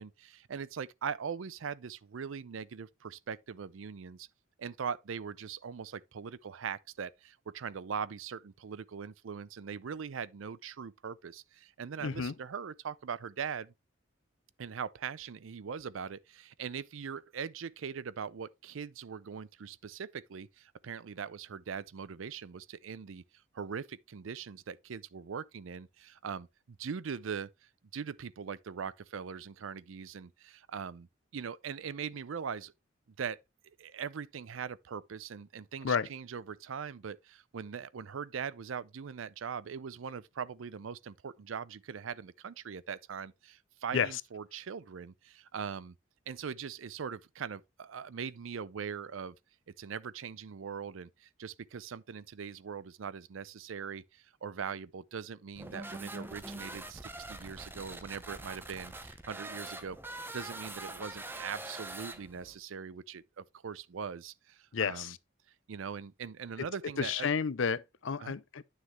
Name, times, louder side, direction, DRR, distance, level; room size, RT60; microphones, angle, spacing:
voice 1, 0.0-4.3 4.6-13.7 14.6-23.2 23.5-26.5 26.8-27.5 27.9-31.1 31.3-32.7 33.2-33.4 33.8-45.9 46.3-49.4 49.8-60.0 60.3-65.2 65.7-67.3 68.2-68.3, right 6 dB, 80° right, 0.5 m, -41 dB
voice 2, 12.0-12.3 35.8-36.1 43.9-44.1 64.7-65.2 67.0-68.6, left 6 dB, 75° left, 0.6 m, -31 dB
sound 1, 55.5-62.5, right 2 dB, 10° right, 0.7 m, -44 dB
9.5 x 6.3 x 3.2 m
head